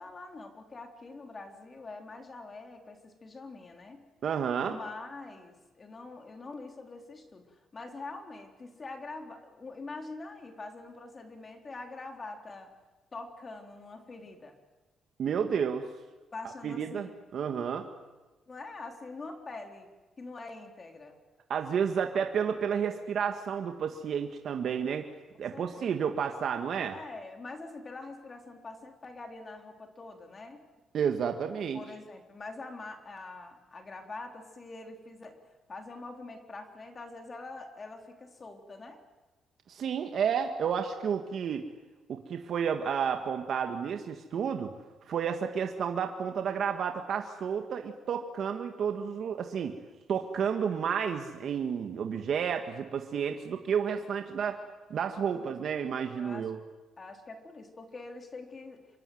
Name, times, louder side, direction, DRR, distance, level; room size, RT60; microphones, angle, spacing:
voice 1, 0.0-4.1 4.6-12.7 13.1-14.6 16.3-17.2 18.5-19.9 20.2-21.2 25.5-25.9 26.8-30.7 31.7-39.0 55.3-55.5 56.2-56.5 57.0-58.8, left 3 dB, 35° left, 4 dB, 3.8 m, -44 dB
voice 2, 4.2-4.8 15.2-15.9 16.6-17.9 21.5-25.1 25.4-26.9 30.9-31.8 39.7-41.7 42.1-44.7 45.1-49.8 50.1-54.6 54.9-56.6, right 7 dB, 60° right, 5 dB, 1.8 m, -31 dB
26.5 x 23.5 x 8.0 m, 1.2 s
cardioid pair, 100°, 0 cm